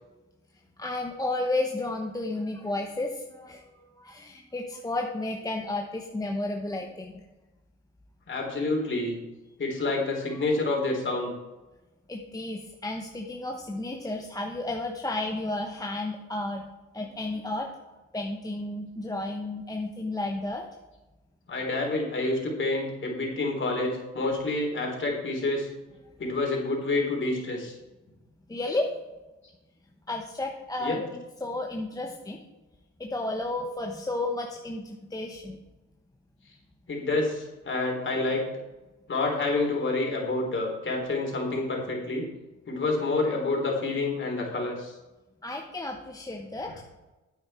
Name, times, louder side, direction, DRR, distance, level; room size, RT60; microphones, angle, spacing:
voice 1, 0.8-7.2 12.1-16.7 16.9-17.7 18.1-20.6 28.5-28.9 30.1-32.4 33.0-35.6 45.4-46.8, left 2 dB, 10° left, 1 dB, 1.0 m, -32 dB
voice 2, 8.3-9.2 9.6-11.3 21.5-25.7 26.2-27.7 30.8-31.0 36.9-38.5 39.1-42.3 42.7-44.9, left 2 dB, 40° left, 0 dB, 3.7 m, -28 dB
9.8 x 8.6 x 4.4 m, 1.1 s
cardioid pair, 90°, 30 cm